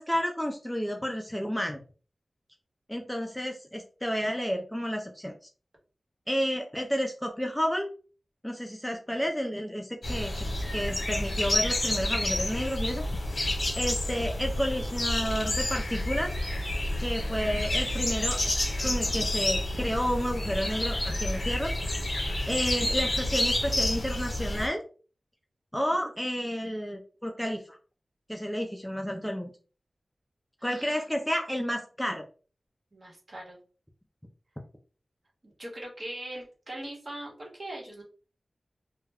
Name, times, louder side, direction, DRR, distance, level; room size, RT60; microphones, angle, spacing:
voice 1, 0.0-1.8 2.9-5.3 6.3-7.9 8.4-13.0 13.8-16.4 17.0-18.4 18.8-21.7 22.5-24.8 25.7-27.8 28.3-29.5 30.6-32.2, equal, 5° left, 2 dB, 0.4 m, -31 dB
sound 1, 10.0-24.7, left 1 dB, 55° left, 1.0 m, -29 dB
voice 2, 30.6-31.0 32.9-33.6 35.4-38.0, right 1 dB, 45° right, -1 dB, 1.1 m, -41 dB
2.3 x 2.1 x 3.4 m, 0.37 s
wide cardioid pair, 75°, 0 cm